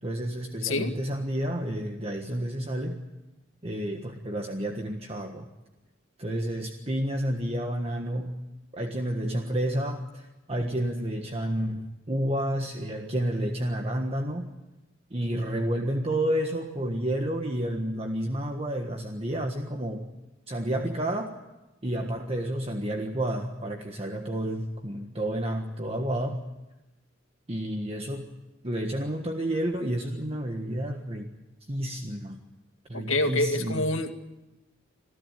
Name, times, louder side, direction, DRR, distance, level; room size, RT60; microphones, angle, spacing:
voice 1, 0.0-3.0 3.6-5.5 6.2-8.4 8.7-14.5 15.1-20.1 20.5-21.4 21.8-26.5 27.5-28.3 28.6-31.3 31.7-32.4 32.9-33.8, right 1 dB, 30° right, 3 dB, 1.5 m, -30 dB
voice 2, 32.9-34.1, left 2 dB, 85° left, 6 dB, 2.1 m, -26 dB
27.5 x 15.5 x 9.2 m, 1.0 s
head